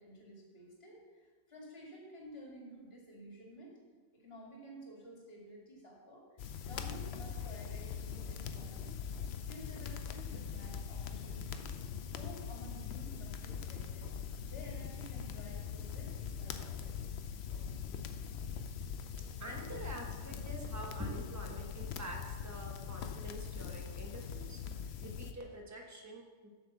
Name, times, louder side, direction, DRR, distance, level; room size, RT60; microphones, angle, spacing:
voice 1, 0.0-3.7 4.1-6.3 6.6-9.0 9.3-11.7 12.2-14.1 14.5-17.0, equal, 40° left, -2 dB, 2.4 m, -52 dB
sound 1, 6.4-25.3, left 7 dB, 65° left, 0.6 m, -42 dB
voice 2, 19.1-24.6 25.0-26.5, equal, 15° right, 1 dB, 1.1 m, -46 dB
7.6 x 6.0 x 6.8 m, 1.4 s
omnidirectional pair, 1.6 m